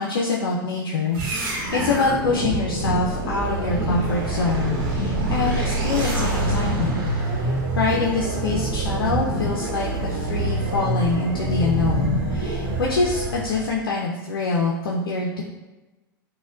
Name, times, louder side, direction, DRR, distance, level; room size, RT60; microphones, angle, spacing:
voice 1, 0.0-7.0 7.4-15.4, left 4 dB, 80° left, -3 dB, 0.4 m, -25 dB
sound 1, 1.1-13.8, right 2 dB, 70° right, 0.9 m, -25 dB
4.1 x 2.1 x 2.3 m, 1.1 s
hypercardioid pair, 95°, 12 cm